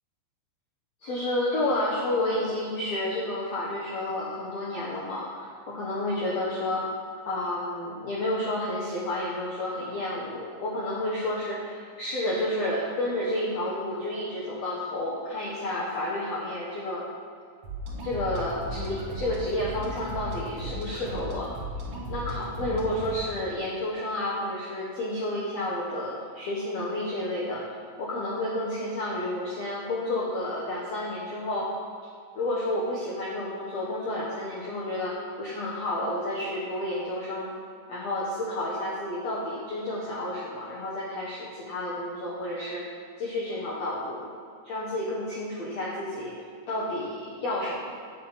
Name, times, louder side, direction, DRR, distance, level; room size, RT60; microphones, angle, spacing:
voice 1, 1.0-6.9 7.2-17.0 18.0-21.5 22.1-27.6 28.0-31.7 32.3-37.5 37.9-42.8 43.2-44.2 44.6-46.3 46.7-47.9, left 1 dB, 85° left, -6 dB, 1.4 m, -30 dB
sound 1, 17.6-23.2, equal, 65° right, 1.4 m, -36 dB
8.4 x 6.3 x 7.3 m, 2.3 s
omnidirectional pair, 5.0 m